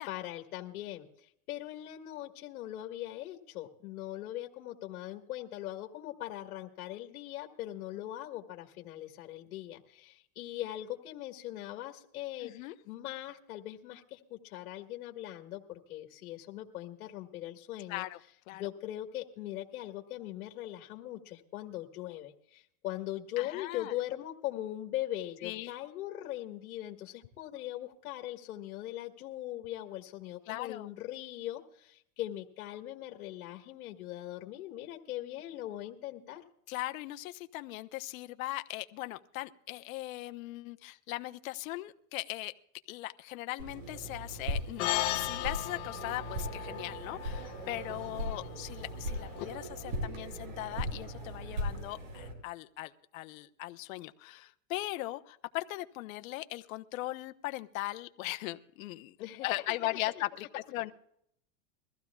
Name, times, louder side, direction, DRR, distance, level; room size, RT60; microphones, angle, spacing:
voice 1, 0.1-18.0 18.6-36.4 59.2-60.2, left 14 dB, 85° left, 3 dB, 1.7 m, -40 dB
voice 2, 12.4-12.7 17.9-18.2 18.5-18.7 23.4-23.9 25.4-25.7 30.5-30.9 36.7-42.5 42.9-59.2 59.4-60.9, left 18 dB, 70° left, 9 dB, 1.0 m, -39 dB
sound 1, 43.6-52.3, equal, 70° right, 6.1 m, -39 dB
sound 2, 44.8-49.4, left 16 dB, 45° left, 1.3 m, -37 dB
22.5 x 15.0 x 2.4 m, 0.70 s
supercardioid pair, 160°, 43 cm